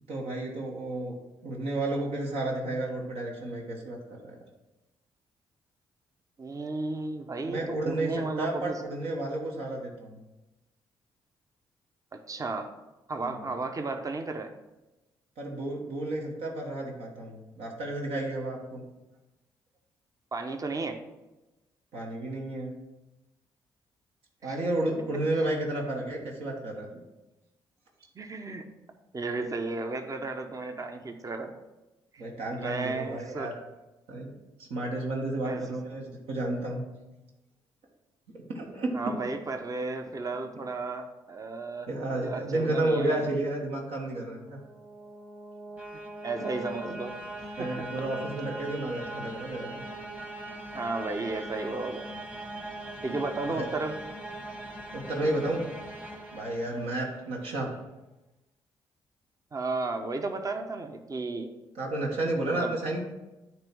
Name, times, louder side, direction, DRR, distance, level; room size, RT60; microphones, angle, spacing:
voice 1, 0.1-1.1 1.4-4.0 4.2-4.3 7.4-8.1 8.4-10.2 13.2-13.4 15.4-18.8 21.9-22.7 24.4-26.9 32.2-33.5 34.1-34.3 34.6-36.8 38.5-38.9 41.9-44.6 47.6-49.8 53.5-53.7 54.9-55.6 56.3-57.7 61.7-63.0, right 2 dB, 75° right, -1 dB, 1.3 m, -31 dB
voice 2, 6.4-8.8 12.1-12.7 13.1-14.5 20.3-21.0 24.4-24.6 28.2-28.6 29.1-31.5 32.1-32.2 32.6-33.5 35.4-35.6 38.9-41.9 42.1-43.3 46.2-47.7 50.7-52.1 53.0-54.0 59.5-61.5 62.5-62.7, right 3 dB, 35° right, 6 dB, 0.8 m, -34 dB
sound 1, 44.3-57.4, right 1 dB, 15° right, 1.1 m, -41 dB
8.7 x 3.1 x 6.0 m, 1.0 s
supercardioid pair, 55°, 10 cm